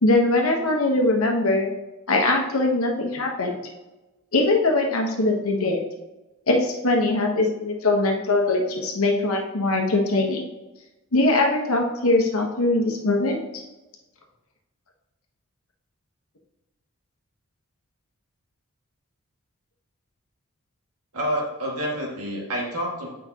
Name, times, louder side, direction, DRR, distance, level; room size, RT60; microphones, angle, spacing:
voice 1, 0.0-1.7 2.1-3.6 4.3-5.9 6.5-10.4 11.1-13.4, left 2 dB, 70° left, 1 dB, 1.2 m, -21 dB
voice 2, 21.1-23.1, equal, 90° right, -2 dB, 2.0 m, -28 dB
8.2 x 5.2 x 2.9 m, 1.1 s
head